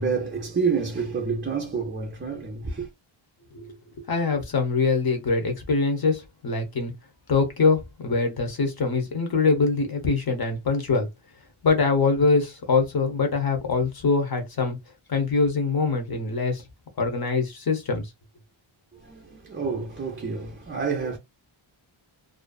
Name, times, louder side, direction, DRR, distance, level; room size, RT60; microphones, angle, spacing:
voice 1, 0.0-2.9 19.0-21.2, right 5 dB, 25° right, 0.4 m, -28 dB
voice 2, 3.5-6.9 7.3-11.1 11.6-14.8 15.1-16.6 17.0-18.1, left 4 dB, 45° left, 0.9 m, -23 dB
2.5 x 2.2 x 2.3 m
wide cardioid pair, 130°, 50 cm